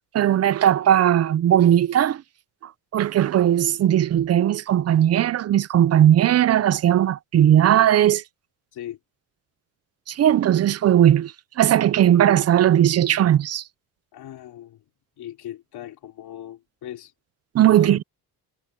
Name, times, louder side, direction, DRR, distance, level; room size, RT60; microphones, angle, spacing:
voice 1, 0.1-2.2 2.9-8.2 10.1-13.6 17.5-18.0, right 11 dB, 40° right, 0.4 m, -18 dB
voice 2, 14.1-14.8 15.2-17.1 17.7-18.0, left 12 dB, 65° left, 3.2 m, -39 dB
cardioid pair, 180°, 41 cm